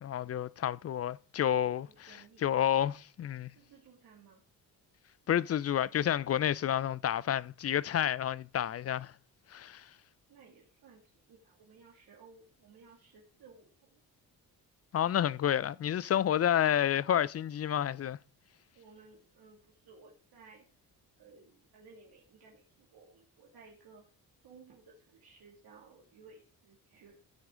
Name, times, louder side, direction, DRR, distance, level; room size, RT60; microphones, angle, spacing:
voice 1, 0.0-3.5 5.3-9.1 9.5-9.9 14.9-18.2, left 10 dB, 40° left, 0.4 m, -30 dB
voice 2, 1.8-2.5 3.6-4.4 10.3-14.0 18.7-20.7 21.2-24.1 24.4-27.2, right 4 dB, 75° right, 2.5 m, -58 dB
15.5 x 6.1 x 3.8 m
cardioid pair, 70°, 38 cm